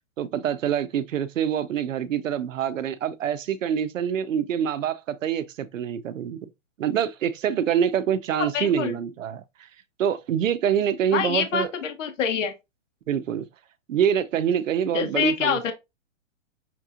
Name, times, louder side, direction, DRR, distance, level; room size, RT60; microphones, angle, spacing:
voice 1, 0.2-6.4 6.8-9.7 10.0-11.7 13.1-13.4 13.9-15.7, right 9 dB, 85° right, 0.7 m, -25 dB
voice 2, 8.5-8.9 11.1-12.5 14.9-15.7, left 7 dB, 75° left, 1.1 m, -26 dB
5.9 x 2.9 x 2.4 m
hypercardioid pair, 140°, 38 cm